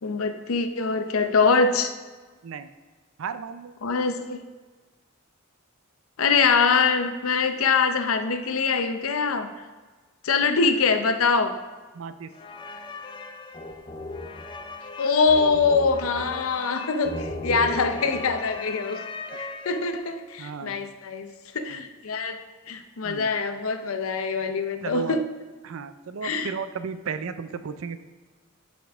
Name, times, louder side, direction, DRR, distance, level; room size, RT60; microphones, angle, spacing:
voice 1, 0.0-1.9 3.8-4.4 6.2-9.5 10.2-11.6 15.0-19.0 19.4-21.3 21.5-22.4 22.7-25.2 26.2-26.5, left 5 dB, 80° left, 7 dB, 0.6 m, -23 dB
voice 2, 3.2-3.7 11.9-12.3 19.3-19.4 20.4-20.9 21.7-21.8 23.0-23.3 24.8-25.2 25.6-28.0, right 5 dB, 70° right, 11 dB, 0.4 m, -34 dB
sound 1, 12.3-20.2, left 2 dB, 25° left, 0.5 m, -37 dB
11.5 x 5.1 x 3.5 m, 1.4 s
head